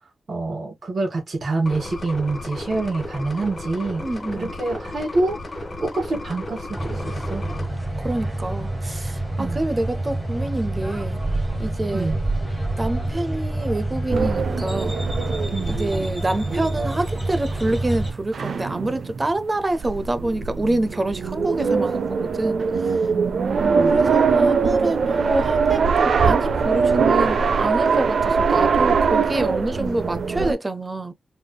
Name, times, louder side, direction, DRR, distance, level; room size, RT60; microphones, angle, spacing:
voice 1, 0.3-4.0 4.3-7.4 9.4-9.6 11.9-12.2 15.5-15.8 23.1-23.9 29.8-30.5, right 3 dB, 50° right, 2.2 m, -27 dB
sound 1, 1.6-7.7, left 1 dB, 35° left, 1.5 m, -34 dB
voice 2, 4.0-4.5 8.0-11.2 11.6-12.2 12.8-15.0 15.7-23.0 23.9-31.1, right 2 dB, 25° right, 0.6 m, -27 dB
sound 2, 6.7-18.1, right 1 dB, 10° right, 2.0 m, -27 dB
sound 3, 14.1-30.5, right 5 dB, 70° right, 0.7 m, -22 dB
4.1 x 3.4 x 2.3 m
wide cardioid pair, 115°, 0 cm